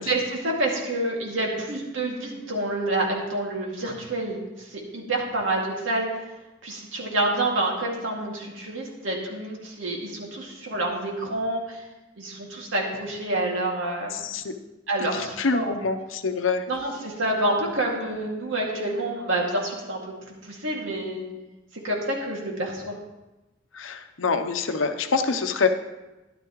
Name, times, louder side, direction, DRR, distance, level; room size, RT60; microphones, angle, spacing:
voice 1, 0.0-6.1 6.6-11.8 12.2-14.2 14.9-15.7 16.7-21.3 21.8-23.0, right 1 dB, 85° right, -1 dB, 2.2 m, -28 dB
voice 2, 15.1-16.6 23.7-25.7, left 4 dB, 85° left, 7 dB, 0.8 m, -25 dB
13.0 x 11.0 x 3.1 m, 1.0 s
head